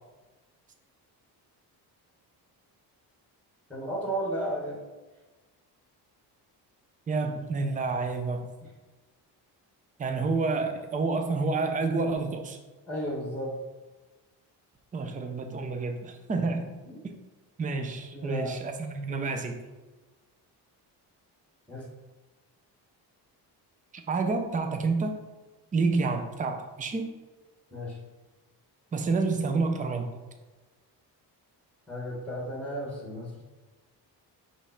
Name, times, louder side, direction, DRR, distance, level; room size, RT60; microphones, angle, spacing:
voice 1, 3.7-4.8 12.9-13.6 16.8-17.0 18.1-18.5 21.7-21.9 27.7-28.0 31.9-33.4, equal, 5° left, -2 dB, 1.2 m, -34 dB
voice 2, 7.1-8.5 10.0-12.6 14.9-16.7 17.0-17.1 17.6-19.6 24.1-25.2 25.7-27.1 28.9-30.2, right 3 dB, 20° right, 5 dB, 0.5 m, -29 dB
5.1 x 3.3 x 5.6 m, 1.2 s
cardioid pair, 165°, 41 cm